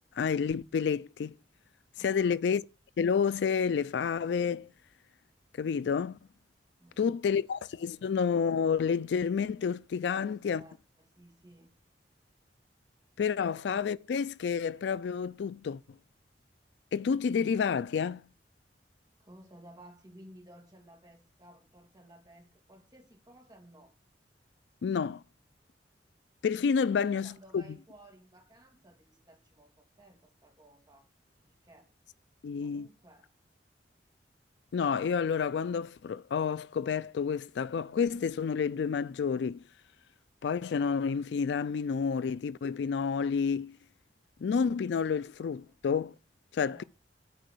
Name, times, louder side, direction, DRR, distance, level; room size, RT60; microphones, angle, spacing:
voice 1, 0.2-1.4 2.0-2.6 3.0-4.7 5.6-6.2 7.0-10.6 13.2-15.8 16.9-18.3 24.8-25.2 26.4-27.6 32.4-32.9 34.7-39.6 40.4-43.8 44.4-46.1 46.5-46.8, left 6 dB, 70° left, 0.3 m, -29 dB
voice 2, 2.0-2.4 6.8-7.3 10.1-11.7 19.2-24.0 26.9-31.1 31.4-31.9 32.6-33.3 45.7-45.8 46.6-46.8, right 1 dB, 25° right, 2.0 m, -56 dB
9.0 x 4.6 x 6.6 m
head